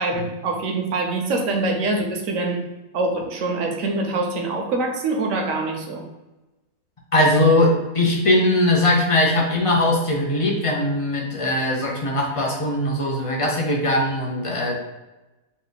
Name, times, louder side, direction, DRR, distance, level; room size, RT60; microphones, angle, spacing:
voice 1, 0.0-2.6 2.9-6.0, right 2 dB, 70° right, 3 dB, 1.1 m, -24 dB
voice 2, 7.1-14.8, left 1 dB, 40° left, -1 dB, 0.4 m, -20 dB
3.9 x 2.4 x 4.0 m, 1.1 s
omnidirectional pair, 1.5 m